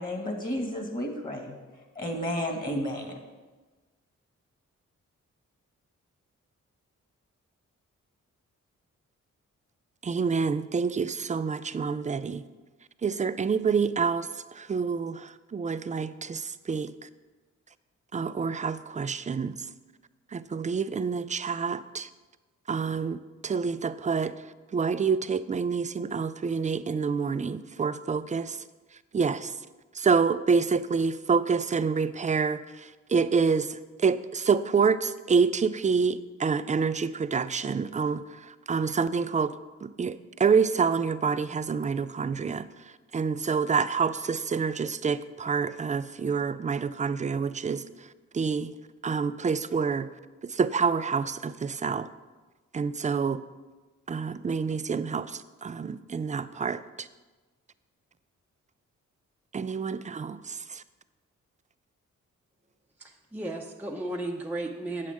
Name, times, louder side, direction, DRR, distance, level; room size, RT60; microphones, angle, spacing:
voice 1, 0.0-1.5 2.0-3.1, equal, 25° left, 2 dB, 1.9 m, -32 dB
voice 2, 10.0-12.4 13.0-17.1 18.1-19.6 20.3-22.1 22.7-24.4 24.7-28.6 29.1-29.5 29.9-39.6 39.8-42.7 43.1-48.1 48.3-48.7 49.0-50.1 50.4-52.1 52.7-53.4 54.1-57.1 59.5-60.8, right 5 dB, 25° right, 14 dB, 0.4 m, -27 dB
voice 3, 63.0-65.1, right 2 dB, 5° right, 0 dB, 0.8 m, -34 dB
8.4 x 7.4 x 3.6 m, 1.2 s
supercardioid pair, 45°, 32 cm